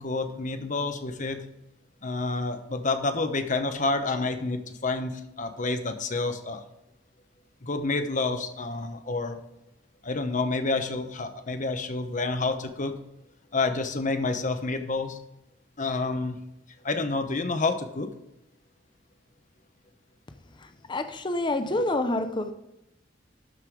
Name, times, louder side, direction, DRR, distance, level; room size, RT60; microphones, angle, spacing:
voice 1, 0.0-1.4 2.0-6.6 7.6-9.4 10.0-13.0 13.5-15.2 15.8-16.4 16.8-18.1, left 3 dB, 45° left, 7 dB, 1.0 m, -29 dB
voice 2, 20.9-22.5, left 2 dB, 25° left, 9 dB, 0.6 m, -27 dB
12.5 x 5.5 x 4.8 m, 0.86 s
head